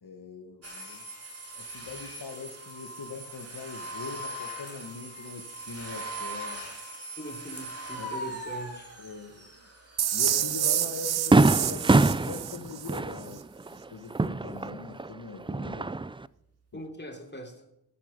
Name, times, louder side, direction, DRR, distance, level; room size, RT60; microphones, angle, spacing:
voice 1, 0.0-1.0 1.5-6.7 8.0-8.4 9.0-9.7 10.1-13.4 13.7-16.0 16.7-16.8, left 4 dB, 70° left, 4 dB, 1.4 m, -42 dB
sound 1, 0.6-12.3, right 1 dB, 35° right, 3.5 m, -41 dB
voice 2, 7.2-8.9 16.7-17.6, equal, 25° left, 3 dB, 3.2 m, -41 dB
sound 2, 10.0-13.0, right 10 dB, 70° right, 0.6 m, -28 dB
Fireworks, 10.3-10.4 10.8-10.9 11.3-15.1 15.4-16.3, right 3 dB, 15° right, 0.4 m, -24 dB
14.0 x 8.5 x 5.2 m, 0.86 s
wide cardioid pair, 60°, 39 cm